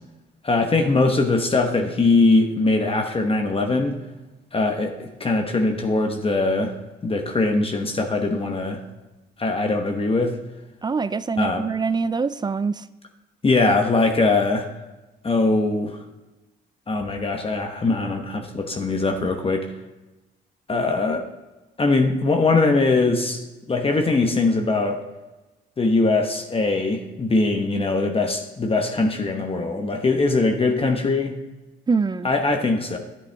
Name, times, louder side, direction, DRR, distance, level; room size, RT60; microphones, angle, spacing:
voice 1, 0.4-3.9 4.5-6.7 7.0-8.8 9.4-10.4 11.4-11.6 13.4-14.7 15.2-16.0 16.9-19.7 20.7-21.2 21.8-23.4 23.7-25.0 25.8-31.3 32.2-33.0, left 3 dB, 30° left, 1.1 m, -21 dB
voice 2, 10.8-12.8 31.9-32.3, right 4 dB, 20° right, 0.4 m, -24 dB
10.5 x 8.7 x 3.4 m
cardioid pair, 90°, 20 cm